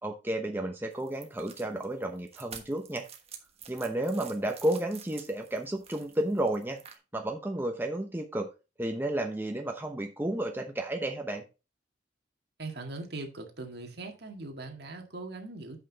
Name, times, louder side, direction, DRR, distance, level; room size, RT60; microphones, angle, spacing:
voice 1, 0.0-3.1 3.7-6.8 7.1-8.5 8.8-11.4, right 1 dB, 10° right, 0.9 m, -32 dB
sound 1, 0.9-6.9, right 7 dB, 35° right, 1.3 m, -49 dB
voice 2, 12.6-15.8, right 2 dB, 60° right, 1.8 m, -40 dB
9.1 x 5.6 x 4.0 m
head